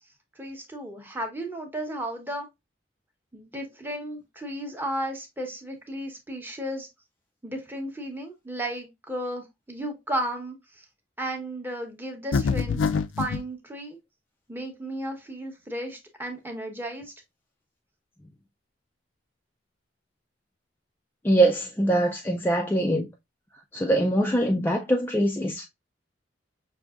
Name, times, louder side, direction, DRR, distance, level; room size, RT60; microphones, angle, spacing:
voice 1, 0.4-2.5 3.3-6.9 7.4-10.8 11.2-12.8 13.2-14.0 14.5-17.1, right 1 dB, 10° right, 0.8 m, -34 dB
sound 1, 12.3-13.4, left 5 dB, 90° left, 0.4 m, -25 dB
voice 2, 21.2-23.1 23.7-25.7, right 1 dB, 10° left, 0.3 m, -23 dB
5.8 x 2.6 x 2.3 m
head